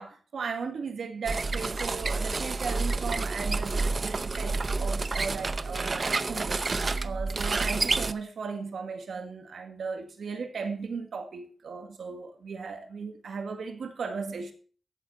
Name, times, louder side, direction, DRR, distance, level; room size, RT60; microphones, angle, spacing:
voice 1, 0.0-6.6 7.0-14.5, right 5 dB, 85° right, 1.8 m, -36 dB
sound 1, 1.3-8.1, right 3 dB, 50° right, 0.6 m, -29 dB
14.5 x 8.0 x 4.2 m
cardioid pair, 70°, 0 cm